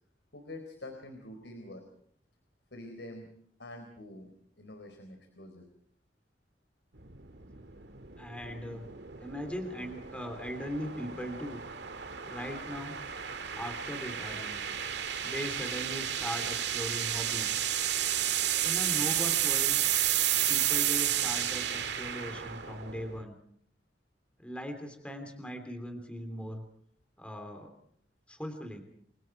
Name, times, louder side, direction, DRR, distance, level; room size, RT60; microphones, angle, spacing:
voice 1, 0.3-1.8 2.7-3.3 3.6-5.6, left 1 dB, 85° left, 5 dB, 4.1 m, -46 dB
sound 1, 7.0-23.2, right 11 dB, 75° right, 2.1 m, -32 dB
voice 2, 8.2-8.9 9.2-11.6 12.2-13.0 13.5-14.6 15.2-17.6 18.6-19.8 20.5-23.3 24.4-26.6 27.2-27.7 28.3-28.8, equal, 5° left, 6 dB, 3.1 m, -39 dB
29.5 x 23.5 x 4.7 m, 0.65 s
head